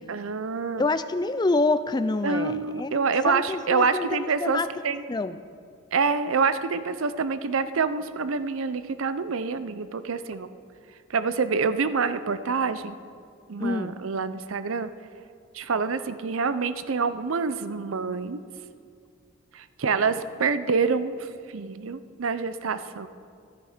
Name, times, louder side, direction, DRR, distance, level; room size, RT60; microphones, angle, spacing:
voice 1, 0.1-0.9 2.2-4.6 4.8-5.0 5.9-10.5 11.1-13.0 13.5-14.9 15.5-18.4 19.5-23.1, right 5 dB, 70° right, 12 dB, 0.6 m, -26 dB
voice 2, 0.8-2.9 3.3-4.7 5.1-5.4 13.6-13.9, left 3 dB, 20° left, 12 dB, 0.3 m, -26 dB
14.5 x 9.9 x 5.0 m, 2.2 s
head